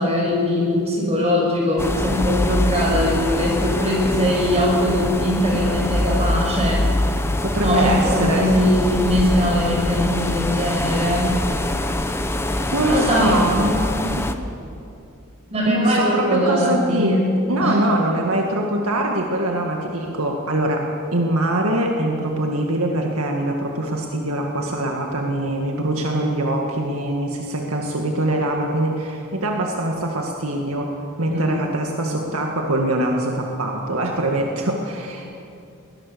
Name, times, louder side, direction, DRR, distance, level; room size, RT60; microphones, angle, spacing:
voice 1, 0.0-6.8 7.6-11.3 12.8-13.4 15.5-17.1 17.6-17.8 31.3-31.5, left 1 dB, 30° right, -2 dB, 6.5 m, -21 dB
sound 1, 1.8-14.3, left 1 dB, 10° left, 1.0 m, -24 dB
voice 2, 7.4-8.6 12.7-14.3 15.7-17.2 17.5-35.3, right 1 dB, 75° right, 1 dB, 1.9 m, -23 dB
21.5 x 19.0 x 6.9 m, 2.6 s
head